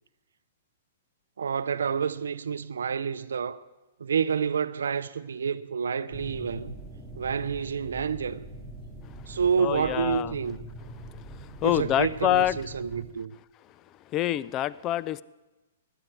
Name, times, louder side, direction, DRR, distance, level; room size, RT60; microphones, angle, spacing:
voice 1, 1.4-3.6 4.0-6.8 7.2-8.4 9.3-10.6 11.6-13.3, right 6 dB, 80° right, 0.5 m, -28 dB
sound 1, 6.1-13.1, right 1 dB, 5° left, 3.5 m, -43 dB
voice 2, 9.6-10.3 11.1-12.6 14.1-15.2, left 14 dB, 30° left, 0.4 m, -26 dB
16.5 x 11.0 x 4.7 m
hypercardioid pair, 130°, 0 cm